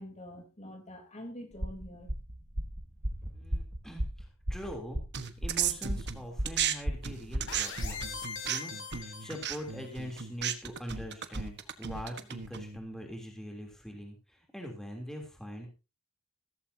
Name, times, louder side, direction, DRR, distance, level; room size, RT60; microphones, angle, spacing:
voice 1, 0.0-2.1, equal, 30° left, 4 dB, 3.4 m, -45 dB
sound 1, 1.5-8.2, equal, 35° right, 1.8 m, -35 dB
voice 2, 3.3-5.0 5.4-8.0 8.4-15.7, equal, ahead, 1 dB, 3.2 m, -43 dB
sound 2, 5.1-6.7 7.0-12.8, right 9 dB, 50° right, 1.3 m, -35 dB
sound 3, 7.5-9.9, left 5 dB, 60° left, 4.5 m, -41 dB
16.0 x 14.5 x 2.8 m, 0.30 s
head